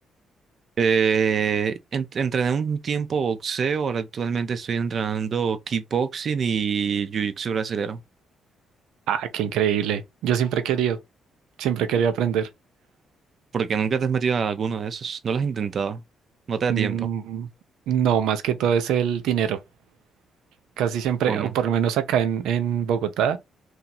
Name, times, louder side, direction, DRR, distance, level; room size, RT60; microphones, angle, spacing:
voice 1, 0.8-8.0 13.5-16.0 16.5-17.1 21.2-21.5, right 6 dB, 50° right, 0.7 m, -25 dB
voice 2, 9.1-11.0 11.6-12.5 16.7-17.5 17.9-19.6 20.8-23.4, right 9 dB, 90° right, 0.6 m, -23 dB
2.9 x 2.8 x 3.8 m
cardioid pair, 90°, 0 cm